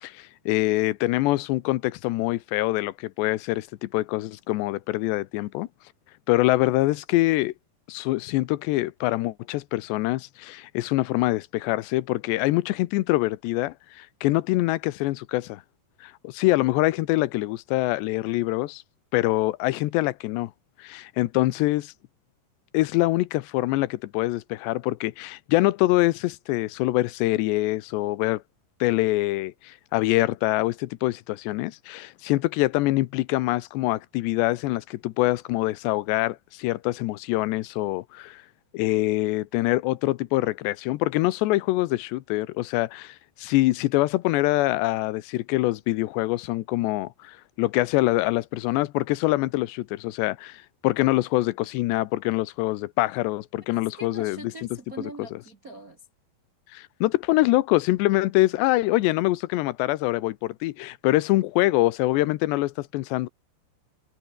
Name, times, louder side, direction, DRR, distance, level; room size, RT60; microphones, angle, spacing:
voice 1, 0.0-5.7 6.3-7.5 7.9-15.6 16.0-18.8 19.1-20.5 20.8-21.9 22.7-28.4 28.8-38.4 38.7-54.4 56.7-63.3, left 18 dB, 85° left, 3.1 m, -24 dB
voice 2, 53.7-56.0, right 2 dB, 40° right, 1.3 m, -42 dB
omnidirectional pair, 4.9 m